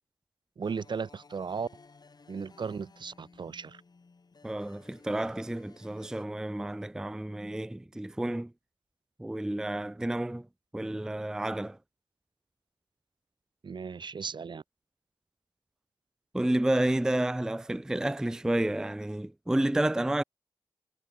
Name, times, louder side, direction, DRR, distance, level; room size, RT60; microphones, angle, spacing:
sound 1, 0.6-6.3, left 4 dB, 50° left, 2.6 m, -57 dB
voice 1, 0.6-1.7 2.3-3.8 13.6-14.6, right 5 dB, 60° right, 1.0 m, -36 dB
voice 2, 4.4-8.5 9.2-10.5 10.7-11.8 16.3-20.2, right 1 dB, 5° right, 0.3 m, -30 dB
cardioid pair, 45°, 9 cm